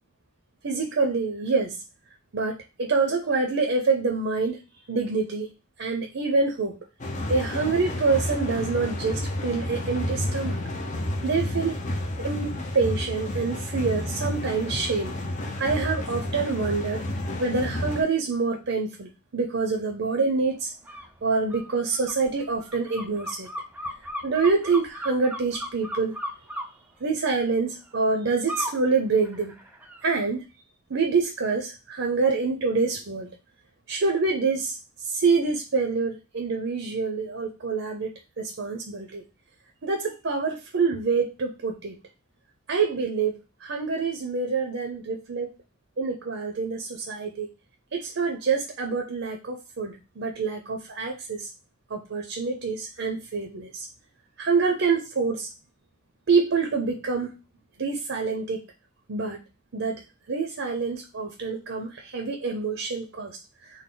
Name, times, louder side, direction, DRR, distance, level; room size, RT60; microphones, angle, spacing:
voice 1, 0.6-1.8 2.3-4.6 4.9-5.5 5.8-6.8 7.3-10.6 11.2-11.8 12.2-15.1 15.6-17.0 17.4-20.7 21.2-23.5 24.2-26.1 27.0-29.5 30.0-30.5 30.9-33.3 33.9-34.8 35.1-39.2 39.8-42.0 42.7-45.5 46.0-47.5 47.9-51.5 51.9-53.9 54.4-55.5 56.3-57.3 57.8-58.6 59.1-59.4 59.7-60.0 60.3-63.3, right 4 dB, 65° right, 3 dB, 0.6 m, -26 dB
sound 1, 7.0-18.0, left 1 dB, 40° left, 0.7 m, -31 dB
sound 2, 20.9-21.1 21.5-26.7 28.5-28.8 29.2-30.0, equal, 10° right, 0.4 m, -36 dB
3.9 x 2.1 x 3.7 m, 0.27 s
head